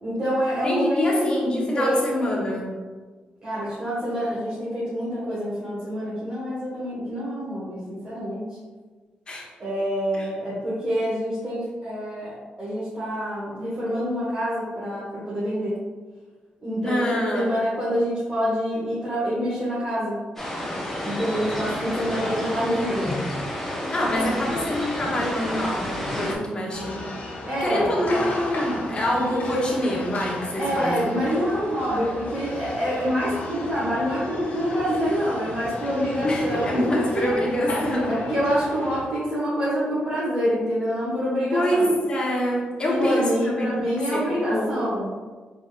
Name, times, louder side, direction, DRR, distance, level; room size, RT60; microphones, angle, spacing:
voice 1, 0.0-1.4 1.7-2.0 3.4-8.5 9.6-12.3 12.6-15.8 16.6-17.0 17.3-20.2 21.0-23.2 27.5-27.9 30.6-37.4 38.1-41.9 42.9-45.1, equal, 30° right, -10 dB, 1.5 m, -26 dB
voice 2, 0.6-2.7 9.3-9.5 10.1-10.3 16.8-17.6 23.9-27.1 27.6-31.1 36.2-38.1 41.5-43.7 44.1-44.9, left 1 dB, 30° left, -3 dB, 1.2 m, -25 dB
sound 1, 20.4-26.3, left 1 dB, 10° left, 1.1 m, -30 dB
sound 2, 26.7-39.0, left 1 dB, 60° left, 1.1 m, -34 dB
4.3 x 4.0 x 2.5 m, 1.4 s
cardioid pair, 90°, 3 cm